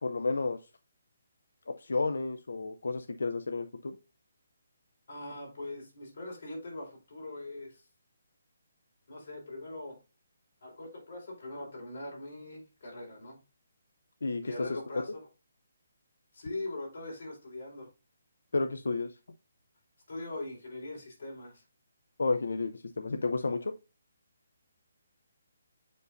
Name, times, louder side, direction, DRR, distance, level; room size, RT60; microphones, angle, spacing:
voice 1, 0.0-0.6 1.7-4.0 14.2-14.8 18.5-19.2 22.2-23.7, left 3 dB, 85° left, 9 dB, 0.5 m, -31 dB
voice 2, 5.1-7.8 9.1-10.0 10.6-13.4 14.4-15.2 16.3-17.9 20.1-21.6, left 2 dB, 50° left, -2 dB, 4.0 m, -41 dB
7.9 x 5.3 x 2.5 m, 0.29 s
hypercardioid pair, 175°, 0 cm